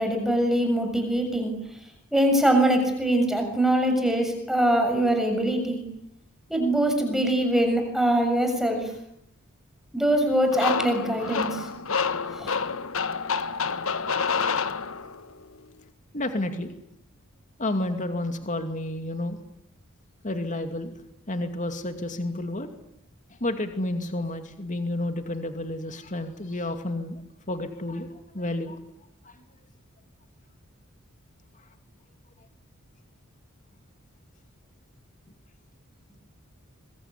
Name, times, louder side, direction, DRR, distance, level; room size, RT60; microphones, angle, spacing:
voice 1, 0.0-1.5 2.1-5.8 6.5-8.9 9.9-11.7 12.4-12.5, right 1 dB, ahead, 4 dB, 6.8 m, -23 dB
sound 1, 10.5-15.3, left 5 dB, 70° left, 1.5 m, -28 dB
voice 2, 16.1-16.7 17.6-19.4 20.2-20.9 21.3-22.7 23.3-28.1 28.3-28.8 29.2-29.4, left 1 dB, 35° left, 7 dB, 2.5 m, -30 dB
25.5 x 23.5 x 9.9 m, 0.76 s
head